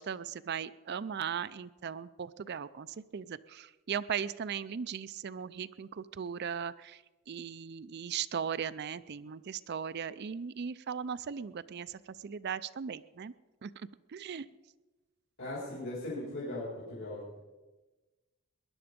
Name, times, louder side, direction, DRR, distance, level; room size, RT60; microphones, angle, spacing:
voice 1, 0.0-2.9 3.1-13.3 13.6-14.5, right 7 dB, 50° right, 15 dB, 0.4 m, -38 dB
voice 2, 15.4-17.4, left 1 dB, 65° left, -5 dB, 4.1 m, -39 dB
20.0 x 11.0 x 5.2 m, 1.2 s
head